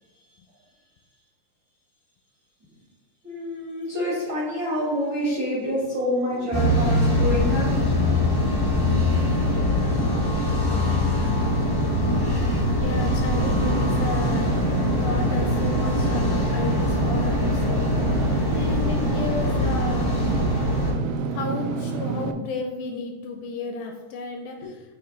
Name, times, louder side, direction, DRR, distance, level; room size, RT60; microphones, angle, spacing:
voice 1, 3.2-7.7 24.6-24.7, equal, 70° right, -6 dB, 1.1 m, -27 dB
sound 1, 6.5-20.9, left 1 dB, 35° left, 0.5 m, -23 dB
voice 2, 12.8-20.3 21.3-25.0, left 4 dB, 80° left, 4 dB, 2.0 m, -33 dB
Engine / Mechanisms, 13.4-22.3, right 5 dB, 85° right, 2.0 m, -29 dB
8.6 x 3.0 x 3.8 m, 1.2 s
omnidirectional pair, 4.5 m